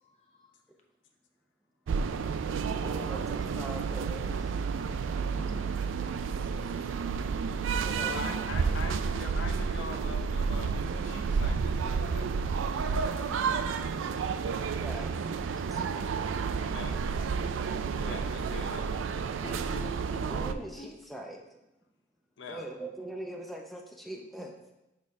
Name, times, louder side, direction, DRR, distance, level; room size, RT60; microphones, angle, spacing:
voice 1, 0.0-0.5 5.3-5.8 19.4-20.9, right 1 dB, 35° left, 2 dB, 0.8 m, -46 dB
sound 1, 1.9-20.5, right 5 dB, 85° right, 0.3 m, -31 dB
voice 2, 2.8-4.5 7.7-8.2 14.6-15.1 15.7-15.8 20.3-21.4 22.5-24.5, right 1 dB, ahead, 1 dB, 0.5 m, -42 dB
voice 3, 8.0-14.4 16.3-17.1 18.0-19.1 22.4-22.7, left 3 dB, 80° left, 5 dB, 0.7 m, -43 dB
6.4 x 3.5 x 5.2 m, 0.93 s
head